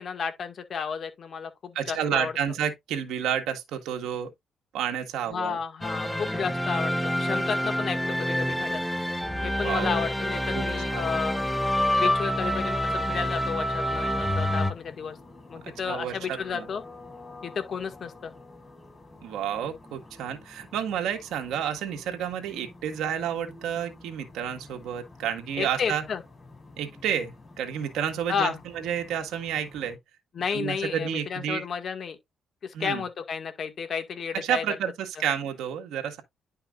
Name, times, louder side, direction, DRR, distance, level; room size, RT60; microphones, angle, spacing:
voice 1, 0.0-2.3 5.3-8.8 9.4-11.4 12.0-15.2 15.5-16.8 17.4-18.3 25.6-26.2 28.3-28.6 30.3-32.2 32.6-34.6, left 6 dB, 55° left, 1.9 m, -32 dB
voice 2, 1.8-4.3 4.7-5.6 9.6-10.0 10.5-10.6 10.9-11.1 15.9-16.7 19.2-26.0 26.8-30.0 30.5-31.6 32.7-33.0 34.3-36.2, right 9 dB, 85° right, 1.8 m, -30 dB
sound 1, 5.8-14.7, equal, 5° left, 1.0 m, -27 dB
sound 2, 13.8-30.0, left 2 dB, 25° left, 6.2 m, -49 dB
10.5 x 5.6 x 2.5 m
cardioid pair, 90°, 0 cm